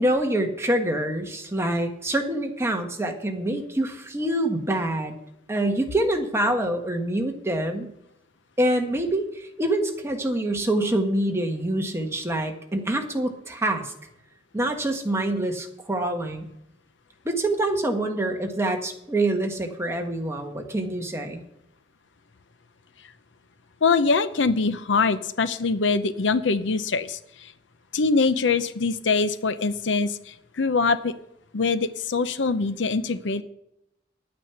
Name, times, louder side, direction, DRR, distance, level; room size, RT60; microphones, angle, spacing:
voice 1, 0.0-5.2 5.5-7.9 8.6-13.9 14.5-16.5 17.2-21.4, right 1 dB, 15° right, 3 dB, 1.5 m, -26 dB
voice 2, 23.8-27.5 27.9-31.1 31.5-33.4, left 4 dB, 70° left, 12 dB, 0.7 m, -23 dB
10.5 x 9.4 x 5.8 m, 0.79 s
head